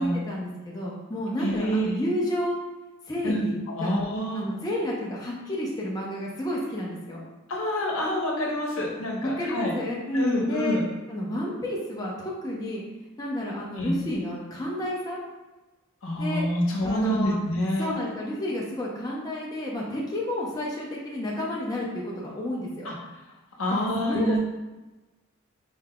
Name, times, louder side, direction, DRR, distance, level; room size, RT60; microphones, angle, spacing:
voice 1, 0.0-2.6 3.1-4.0 4.3-7.2 9.2-10.8 11.1-12.8 13.2-15.2 16.2-17.4 17.8-22.9 24.0-24.4, left 1 dB, 15° left, -4 dB, 0.5 m, -31 dB
voice 2, 1.4-1.9 3.2-4.4 7.5-9.7 10.1-10.8 13.7-13.9 16.0-17.9 22.8-22.9 23.6-24.4, equal, 70° left, -2 dB, 0.9 m, -27 dB
4.7 x 3.8 x 2.2 m, 1.1 s
head